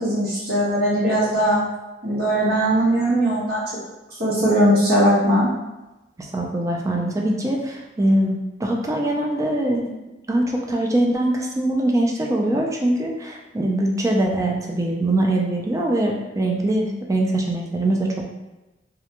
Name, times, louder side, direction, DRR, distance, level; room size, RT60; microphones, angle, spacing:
voice 1, 0.0-1.6 2.0-3.6 4.2-5.5, equal, 60° right, -10 dB, 1.1 m, -19 dB
voice 2, 6.2-9.8 10.3-18.2, right 1 dB, 20° right, 0 dB, 0.3 m, -22 dB
2.4 x 2.2 x 2.9 m, 1.0 s
head